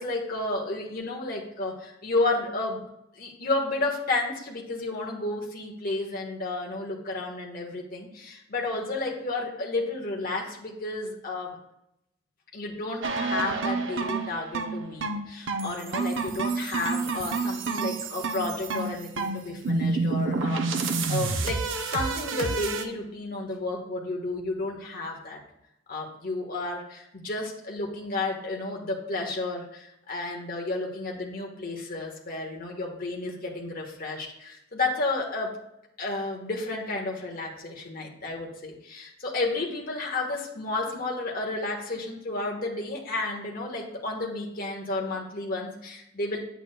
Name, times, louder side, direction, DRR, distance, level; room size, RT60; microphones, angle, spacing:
voice 1, 0.0-2.8 3.1-11.6 12.5-25.4 25.9-35.6 36.0-46.4, left 2 dB, 50° left, 0 dB, 1.4 m, -32 dB
sound 1, 13.0-22.8, right 4 dB, 80° right, 0.6 m, -29 dB
8.6 x 8.1 x 2.3 m, 0.82 s
head